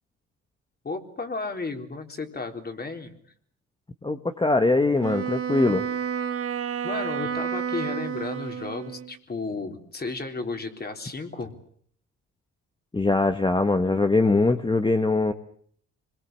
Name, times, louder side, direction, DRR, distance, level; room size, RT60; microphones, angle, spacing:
voice 1, 0.8-3.2 6.8-11.5, left 3 dB, 30° left, 5 dB, 3.9 m, -33 dB
voice 2, 4.0-5.8 12.9-15.3, left 3 dB, 15° left, 7 dB, 1.4 m, -22 dB
Wind instrument woodwind instrument, 5.0-9.2, right 8 dB, 50° right, 1.5 m, -30 dB
25.5 x 22.0 x 7.6 m, 0.62 s
cardioid pair, 90°, 30 cm